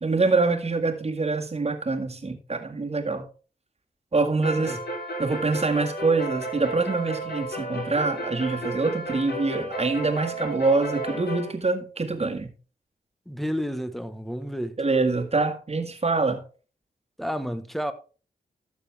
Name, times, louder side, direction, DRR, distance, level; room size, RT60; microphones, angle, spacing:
voice 1, 0.0-3.3 4.1-4.8 5.2-12.5 14.8-16.4, right 3 dB, 40° right, 1.8 m, -25 dB
sound 1, 4.4-11.5, right 1 dB, 90° left, 3.5 m, -33 dB
voice 2, 13.3-14.8 17.2-17.9, equal, ahead, 1.2 m, -31 dB
12.5 x 6.8 x 3.4 m
cardioid pair, 65°, 16 cm